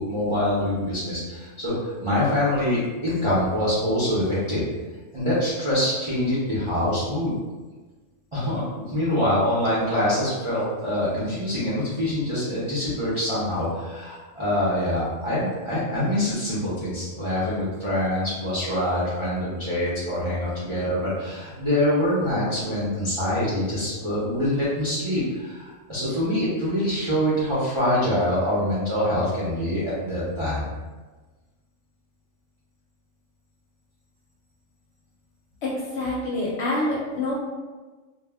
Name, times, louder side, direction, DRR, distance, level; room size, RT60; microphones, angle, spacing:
voice 1, 0.0-4.6 5.1-7.3 8.3-30.7, left 1 dB, 40° right, -10 dB, 0.4 m, -25 dB
voice 2, 35.6-37.3, left 2 dB, 65° left, -4 dB, 0.8 m, -26 dB
2.2 x 2.1 x 3.3 m, 1.3 s
omnidirectional pair, 1.4 m